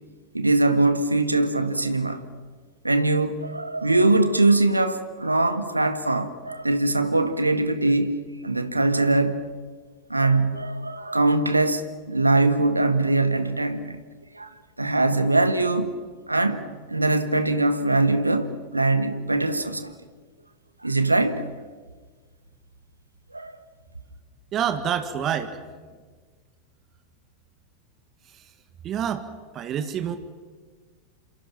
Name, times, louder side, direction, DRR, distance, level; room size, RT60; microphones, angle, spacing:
voice 1, 0.3-2.2 2.8-8.2 8.4-9.5 10.1-14.0 14.3-15.9 16.3-19.9 20.8-21.4 23.3-23.6, right 2 dB, 85° right, 1.6 m, -22 dB
voice 2, 24.5-25.6 28.8-29.3 29.5-30.2, right 8 dB, 30° right, 1.8 m, -27 dB
28.5 x 26.5 x 5.9 m
figure-of-eight pair, 90°, 0 cm